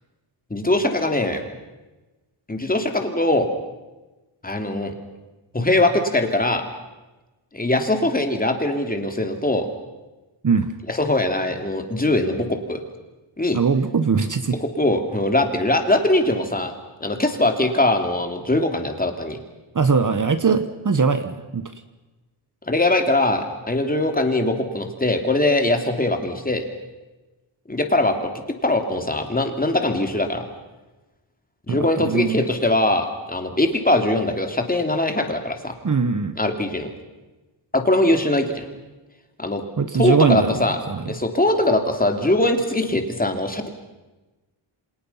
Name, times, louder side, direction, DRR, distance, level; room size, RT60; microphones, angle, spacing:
voice 1, 0.5-1.4 2.5-3.5 4.4-4.9 5.5-6.6 7.5-9.7 10.9-12.8 13.4-13.6 14.6-16.7 17.0-19.4 22.7-26.6 27.7-28.3 28.6-30.4 31.7-35.7 36.4-36.9 37.7-38.7 39.4-39.6 39.9-40.8 41.1-43.7, left 1 dB, 20° left, 5 dB, 2.9 m, -21 dB
voice 2, 13.5-14.6 19.7-21.7 31.7-32.4 35.8-36.4 39.8-41.1, right 5 dB, 40° right, 10 dB, 1.2 m, -21 dB
29.0 x 26.5 x 5.7 m, 1.1 s
wide cardioid pair, 150°, 49 cm